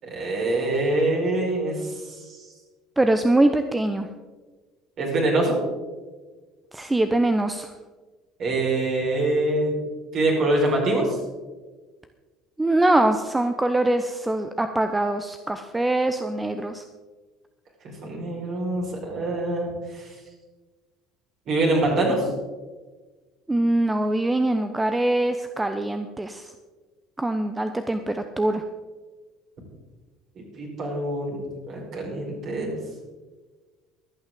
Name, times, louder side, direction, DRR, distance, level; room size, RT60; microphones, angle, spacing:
voice 1, 0.0-2.4 5.0-5.6 8.4-9.8 10.1-11.2 17.8-20.1 21.5-22.3 30.3-31.4 31.7-32.8, right 2 dB, 45° right, -2 dB, 4.9 m, -25 dB
voice 2, 3.0-4.1 6.7-7.7 12.6-16.8 23.5-26.5 27.2-28.6, right 1 dB, 10° right, 8 dB, 0.8 m, -23 dB
23.5 x 8.9 x 3.8 m, 1.3 s
figure-of-eight pair, 60°, 0 cm